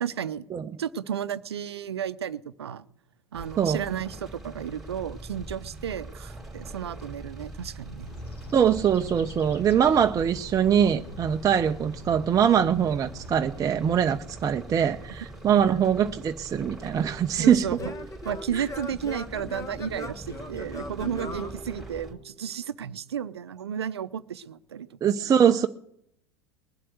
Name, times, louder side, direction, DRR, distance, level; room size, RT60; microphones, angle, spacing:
voice 1, 0.0-0.4 0.8-2.9 3.3-8.1 17.4-17.9 18.2-25.1, right 9 dB, 80° right, 14 dB, 0.6 m, -33 dB
sound 1, 3.3-22.1, right 2 dB, ahead, 3.3 m, -43 dB
sound 2, 8.0-14.2, left 2 dB, 85° left, 4.9 m, -44 dB
voice 2, 8.5-17.7 18.5-18.7 25.0-25.7, right 8 dB, 25° right, 6 dB, 0.5 m, -23 dB
Singing / Plucked string instrument, 16.5-22.4, left 2 dB, 25° left, 1.4 m, -40 dB
20.5 x 7.6 x 8.0 m, 0.76 s
hypercardioid pair, 80°, 13 cm